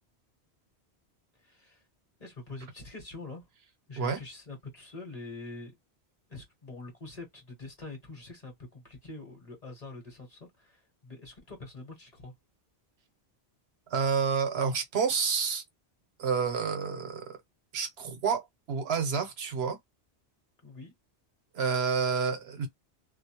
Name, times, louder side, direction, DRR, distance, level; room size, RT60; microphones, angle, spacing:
voice 1, 1.4-1.8 2.2-3.5 3.9-5.7 6.3-12.3 20.6-20.9, left 3 dB, 40° left, 1.0 m, -45 dB
voice 2, 13.9-15.6 16.2-17.4 17.7-19.8 21.5-22.7, right 6 dB, 70° right, 0.9 m, -29 dB
2.4 x 2.0 x 2.8 m
omnidirectional pair, 1.1 m